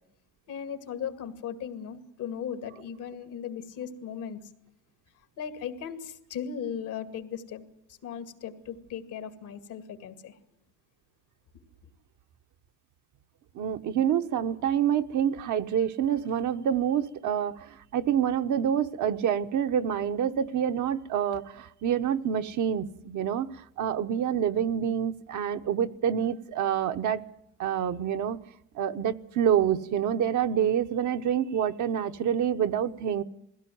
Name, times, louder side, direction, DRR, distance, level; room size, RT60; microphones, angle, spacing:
voice 1, 0.5-4.4 5.4-7.6 7.9-10.4, left 8 dB, 85° left, 2.2 m, -37 dB
voice 2, 13.5-23.5 23.8-27.2 27.6-28.4 28.7-33.2, right 9 dB, 75° right, 1.0 m, -27 dB
21.0 x 16.5 x 9.3 m
cardioid pair, 90°, 30 cm